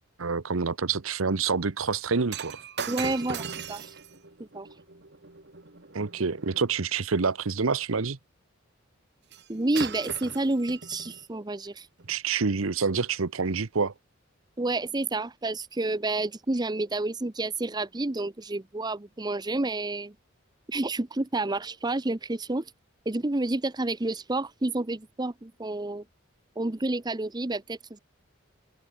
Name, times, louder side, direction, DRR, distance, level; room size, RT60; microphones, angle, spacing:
voice 1, 0.2-2.6 5.9-8.2 12.1-13.9, right 5 dB, 75° right, 0.9 m, -27 dB
Shatter, 2.3-6.7 9.3-9.5 9.7-11.3 12.0-12.1, right 5 dB, 55° right, 2.2 m, -39 dB
voice 2, 2.9-3.9 4.4-4.7 9.5-11.9 14.6-20.1 20.7-22.7 23.1-26.0 26.6-28.0, right 2 dB, 20° right, 0.7 m, -29 dB
open air
head